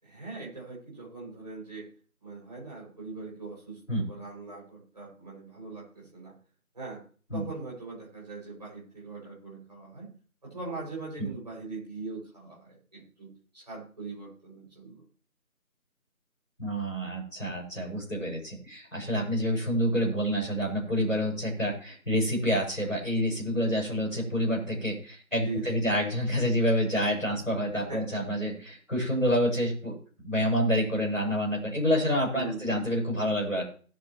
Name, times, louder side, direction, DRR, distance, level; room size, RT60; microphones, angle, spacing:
voice 1, 0.0-1.9 2.2-6.4 6.7-7.1 7.3-10.2 10.4-15.0 25.4-25.9 27.7-28.2 32.3-32.8, right 3 dB, 30° right, -5 dB, 7.1 m, -41 dB
voice 2, 16.6-29.9 30.2-33.6, equal, ahead, -24 dB, 4.9 m, -28 dB
20.0 x 8.2 x 3.2 m, 0.41 s
figure-of-eight pair, 175°, 43 cm